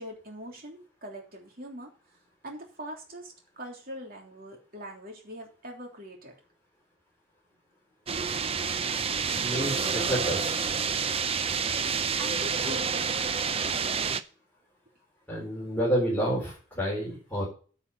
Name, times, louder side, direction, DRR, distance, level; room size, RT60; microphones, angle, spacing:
voice 1, 0.0-1.9 2.4-6.3 12.2-13.3, equal, 50° right, 1 dB, 3.2 m, -42 dB
sound 1, 8.1-14.2, right 6 dB, 30° right, 0.6 m, -29 dB
voice 2, 9.3-10.6 15.3-17.4, equal, 10° left, -5 dB, 4.0 m, -29 dB
10.0 x 5.6 x 7.1 m, 0.38 s
head